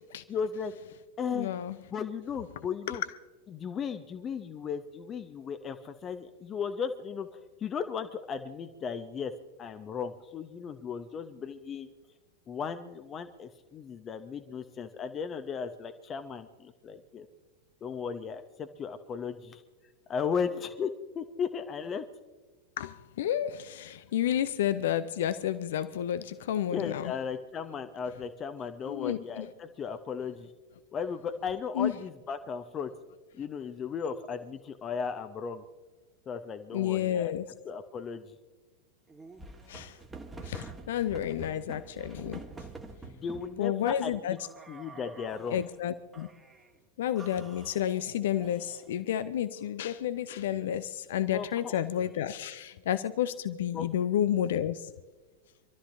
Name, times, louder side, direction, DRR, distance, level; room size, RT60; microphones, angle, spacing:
voice 1, 0.3-0.7 1.2-1.5 1.9-3.0 3.5-7.3 7.6-9.3 9.6-11.9 12.5-17.3 17.8-19.6 20.1-20.9 21.1-22.0 26.7-30.5 30.9-32.9 33.4-35.6 36.3-37.3 37.6-38.4 43.0-44.4 44.7-45.6 51.3-51.8 52.2-52.3 53.7-53.9, left 6 dB, 25° left, 0.9 m, -36 dB
voice 2, 1.3-1.8 2.9-3.0 22.8-27.1 28.9-29.5 31.8-31.9 36.7-37.5 39.7-40.0 40.4-42.7 43.6-44.4 45.5-46.3 47.0-54.9, left 10 dB, 55° left, 0.6 m, -31 dB
sound 1, 39.1-43.5 44.4-45.7 46.1-46.7 47.2-49.0, right 3 dB, 10° right, 1.5 m, -47 dB
27.0 x 13.0 x 2.7 m
figure-of-eight pair, 90°, 0 cm